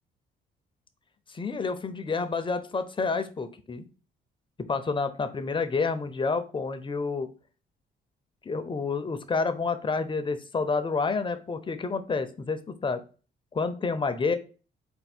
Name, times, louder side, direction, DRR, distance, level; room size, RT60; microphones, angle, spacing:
voice 1, 1.3-3.9 4.7-7.3 8.5-13.0 13.5-14.4, left 4 dB, 25° left, 9 dB, 0.6 m, -29 dB
4.4 x 2.2 x 4.2 m, 0.36 s
cardioid pair, 90°, 20 cm